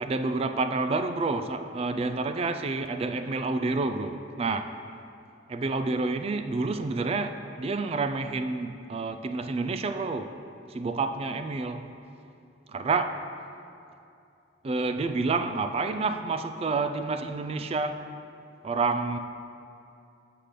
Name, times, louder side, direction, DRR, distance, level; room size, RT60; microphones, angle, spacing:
voice 1, 0.0-4.7 5.5-10.3 10.7-11.9 12.7-13.2 14.6-18.0 18.6-19.2, right 3 dB, 35° right, 0.3 m, -29 dB
6.6 x 5.8 x 5.1 m
head